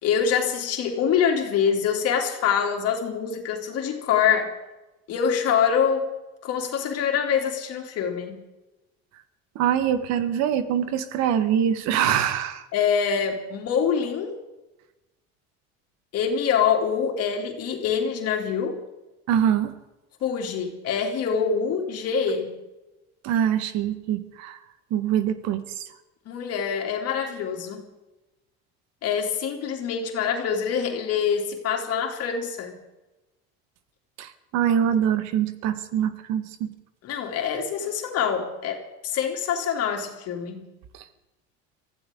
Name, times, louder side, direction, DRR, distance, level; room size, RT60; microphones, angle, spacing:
voice 1, 0.0-4.5 5.1-6.1 6.4-8.4 12.7-14.4 16.1-18.8 20.2-22.6 26.2-27.8 29.0-32.8 37.0-40.7, left 7 dB, 55° left, 2 dB, 3.1 m, -25 dB
voice 2, 9.5-12.6 19.3-19.7 23.2-24.6 24.9-25.8 34.2-36.7 40.9-41.0, right 9 dB, 65° right, 11 dB, 1.6 m, -24 dB
23.5 x 15.5 x 3.8 m, 1.0 s
supercardioid pair, 110°, 29 cm